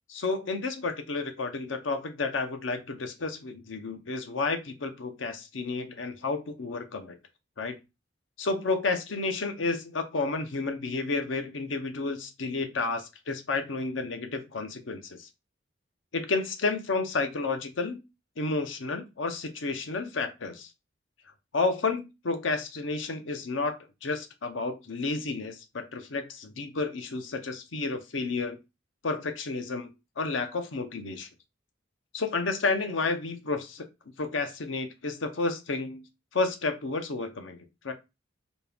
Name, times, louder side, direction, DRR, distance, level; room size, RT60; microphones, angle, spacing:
voice 1, 0.1-7.2 7.6-7.8 8.4-15.3 16.1-18.0 18.4-20.7 21.5-23.7 24.0-28.6 29.0-29.9 30.2-31.3 32.1-33.9 34.2-36.1 36.3-37.6 37.8-37.9, left 3 dB, 75° left, 7 dB, 0.7 m, -31 dB
4.2 x 2.3 x 3.4 m, 0.25 s
head